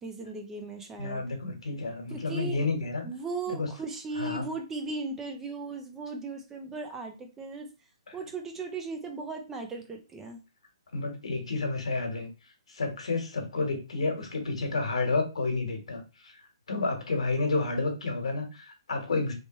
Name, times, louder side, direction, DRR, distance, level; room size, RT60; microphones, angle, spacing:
voice 1, 0.0-1.2 2.1-2.6 3.0-7.7 8.1-10.4, right 3 dB, 10° right, 3 dB, 0.5 m, -37 dB
voice 2, 1.0-3.1 3.5-3.7 4.2-4.5 8.1-8.2 10.9-12.3 12.7-16.3 16.7-19.3, left 3 dB, 85° left, 5 dB, 1.3 m, -30 dB
3.2 x 3.1 x 3.0 m, 0.30 s
hypercardioid pair, 160°, 3 cm